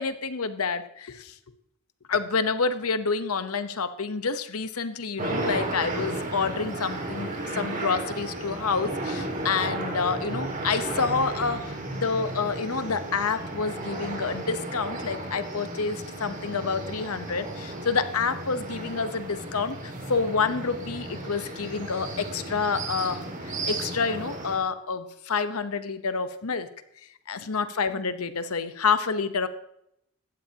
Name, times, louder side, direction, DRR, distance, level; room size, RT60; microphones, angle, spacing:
voice 1, 0.0-1.3 2.1-26.7 27.3-29.5, left 5 dB, 80° left, 11 dB, 1.0 m, -28 dB
sound 1, 5.2-24.6, right 2 dB, 35° right, 2.1 m, -34 dB
16.5 x 12.5 x 2.9 m, 0.76 s
head